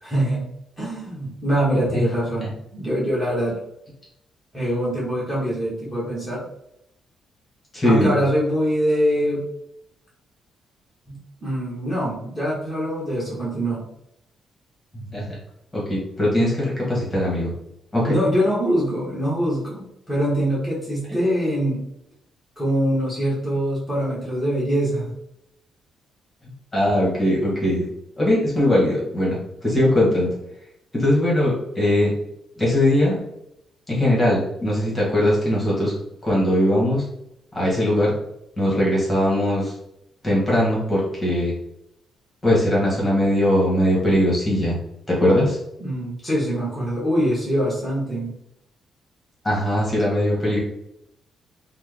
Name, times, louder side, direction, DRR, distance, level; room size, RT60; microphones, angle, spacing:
voice 1, 0.0-0.5 0.8-3.6 4.5-6.4 7.8-9.4 11.1-13.8 18.1-21.8 22.6-25.1 45.8-48.3, equal, 5° right, -8 dB, 1.0 m, -23 dB
voice 2, 7.7-8.1 15.1-15.3 15.7-17.5 17.9-18.2 21.1-21.2 26.7-27.8 28.2-29.4 29.6-30.3 30.9-32.1 32.6-33.2 33.9-35.9 36.2-37.0 37.5-38.1 38.6-39.7 40.2-41.5 42.4-44.8 45.1-45.6 49.4-50.6, left 1 dB, 15° left, -5 dB, 1.2 m, -20 dB
3.2 x 2.0 x 3.3 m, 0.80 s
cardioid pair, 130°, 0 cm